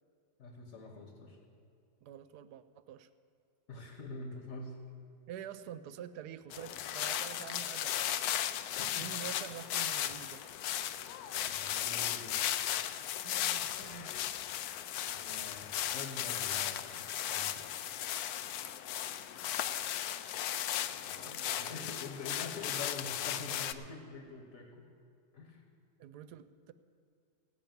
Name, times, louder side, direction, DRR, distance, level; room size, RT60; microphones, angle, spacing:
voice 1, 0.4-1.4 3.7-4.8 8.7-9.1 11.3-12.5 15.0-17.7 20.8-24.9 25.3-25.6, left 3 dB, 55° left, 3 dB, 1.6 m, -46 dB
voice 2, 2.0-3.1 5.3-8.3 9.0-10.4 13.2-14.1 21.2-22.0 26.0-26.7, right 9 dB, 80° right, 13 dB, 1.2 m, -47 dB
sound 1, 6.5-23.7, left 11 dB, 75° left, 1.0 m, -36 dB
16.5 x 5.9 x 9.2 m, 2.4 s
omnidirectional pair, 1.7 m